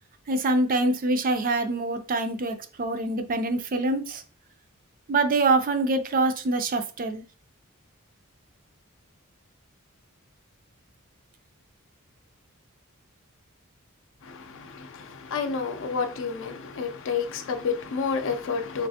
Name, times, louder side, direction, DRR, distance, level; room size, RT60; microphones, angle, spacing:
voice 1, 0.3-4.2 5.1-7.2, right 2 dB, 40° right, 0.4 m, -25 dB
voice 2, 14.2-18.9, left 5 dB, 60° left, 0.5 m, -30 dB
3.2 x 3.1 x 2.8 m
head